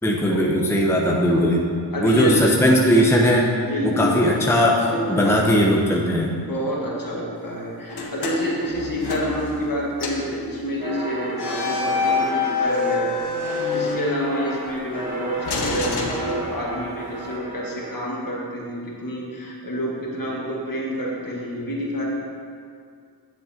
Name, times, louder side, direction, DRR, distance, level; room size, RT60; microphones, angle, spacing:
voice 1, 0.0-1.7 2.0-3.5 3.8-6.4, equal, 5° left, -1 dB, 0.8 m, -19 dB
voice 2, 1.9-2.5 3.6-4.3 4.8-5.4 6.4-22.0, equal, 50° left, -4 dB, 1.9 m, -28 dB
sound 1, 7.9-9.7 10.0-10.3 11.3-14.6 15.4-16.9, left 4 dB, 65° left, 1.1 m, -26 dB
sound 2, 10.8-18.0, right 1 dB, 20° right, 2.0 m, -34 dB
9.4 x 7.1 x 2.9 m, 2.3 s
cardioid pair, 50°, 42 cm